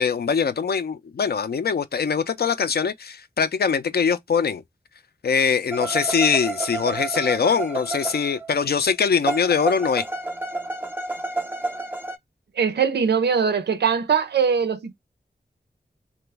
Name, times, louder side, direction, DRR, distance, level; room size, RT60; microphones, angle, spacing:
voice 1, 0.0-4.6 5.2-10.0, left 6 dB, 70° left, 0.4 m, -22 dB
sound 1, 5.7-8.7 9.3-12.2, right 3 dB, 10° right, 0.6 m, -30 dB
voice 2, 12.6-14.9, right 6 dB, 90° right, 0.5 m, -21 dB
3.0 x 2.2 x 3.3 m
wide cardioid pair, 90°, 17 cm